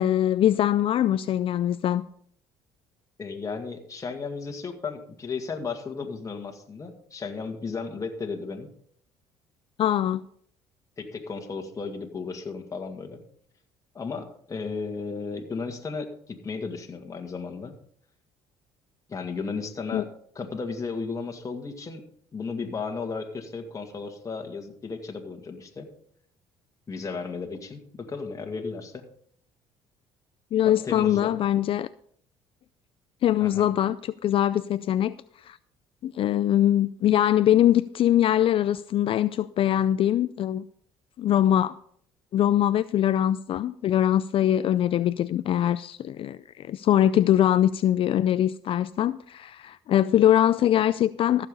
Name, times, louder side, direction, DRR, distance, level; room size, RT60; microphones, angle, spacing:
voice 1, 0.0-2.1 9.8-10.2 19.9-20.0 30.5-31.9 33.2-35.2 35.4-35.6 36.0-40.6 41.2-41.8 42.3-51.5, left 11 dB, 50° left, 0.4 m, -22 dB
voice 2, 3.2-8.7 11.0-13.2 13.9-17.7 19.1-20.1 20.4-22.0 22.3-25.9 26.9-29.1 30.7-31.3 33.4-33.7, left 4 dB, 30° left, 1.9 m, -34 dB
14.5 x 6.9 x 5.4 m
supercardioid pair, 85°, 11 cm